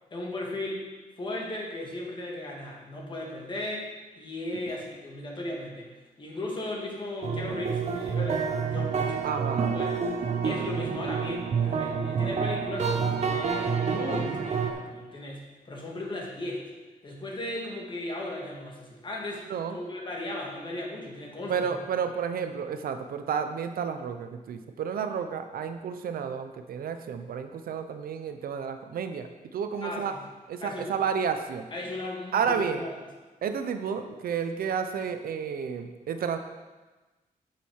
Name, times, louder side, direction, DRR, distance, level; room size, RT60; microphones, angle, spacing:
voice 1, 0.1-0.8 1.2-9.2 9.7-10.0 10.4-16.7 17.0-21.8 29.8-30.2 30.6-30.9 31.7-33.0, left 1 dB, 35° left, -1 dB, 1.7 m, -36 dB
sound 1, 7.2-14.7, right 6 dB, 50° right, 0.9 m, -28 dB
voice 2, 9.2-9.7 19.5-19.8 21.5-30.1 30.5-31.7 32.3-32.8 33.4-36.4, right 7 dB, 85° right, 8 dB, 0.7 m, -31 dB
7.6 x 7.2 x 4.7 m, 1.2 s
wide cardioid pair, 140°, 15 cm